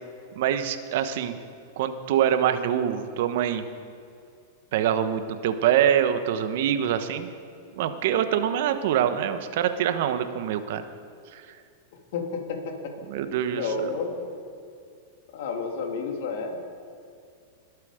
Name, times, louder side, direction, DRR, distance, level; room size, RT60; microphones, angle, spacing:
voice 1, 0.4-1.4 1.8-3.6 4.7-7.3 7.8-10.9 11.3-11.4 13.1-13.6, right 9 dB, 65° right, 10 dB, 1.1 m, -24 dB
voice 2, 11.9-12.9 13.5-14.2 15.3-16.6, left 4 dB, 65° left, 2 dB, 2.7 m, -31 dB
21.5 x 8.3 x 5.0 m, 2.4 s
hypercardioid pair, 115°, 0 cm